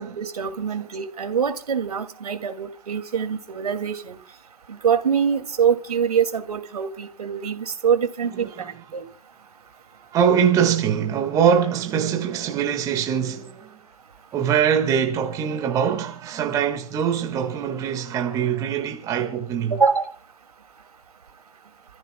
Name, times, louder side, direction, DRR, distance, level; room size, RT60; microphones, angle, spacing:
voice 1, 0.0-4.2 4.7-8.5 8.9-9.0 19.7-20.1, right 7 dB, 65° right, 2.4 m, -24 dB
voice 2, 8.3-8.8 10.1-13.7 14.3-19.8, right 8 dB, 15° right, 1.7 m, -23 dB
29.0 x 14.5 x 2.3 m
figure-of-eight pair, 135°, 21 cm